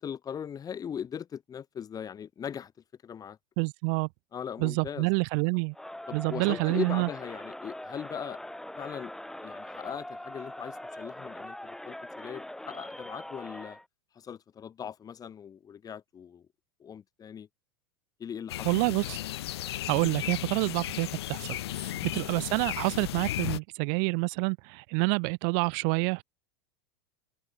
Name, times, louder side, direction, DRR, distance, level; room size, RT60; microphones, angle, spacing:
voice 1, 0.0-2.7 3.0-3.4 4.3-5.1 6.1-8.4 8.8-9.1 9.4-13.8 14.2-16.5 16.8-17.5 18.2-18.8 19.1-19.2 20.6-20.7 21.9-22.1, left 8 dB, 25° left, 2.3 m, -39 dB
voice 2, 3.6-4.1 4.6-5.7 6.1-7.1 18.6-19.2 19.9-26.2, right 40 dB or more, 55° right, 2.2 m, -28 dB
Crowd, 5.7-13.9, left 1 dB, 5° left, 1.8 m, -42 dB
sound 1, 18.5-23.6, left 14 dB, 75° left, 1.0 m, -35 dB
open air
hypercardioid pair, 100°, 14 cm